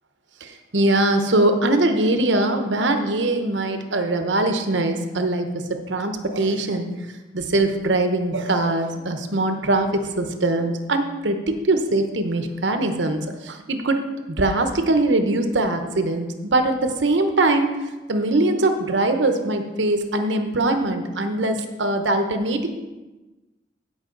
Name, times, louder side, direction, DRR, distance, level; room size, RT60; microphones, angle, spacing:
voice 1, 0.4-7.0 7.3-17.7 18.1-22.7, right 2 dB, 85° right, 6 dB, 1.0 m, -22 dB
15.5 x 5.7 x 3.9 m, 1.1 s
head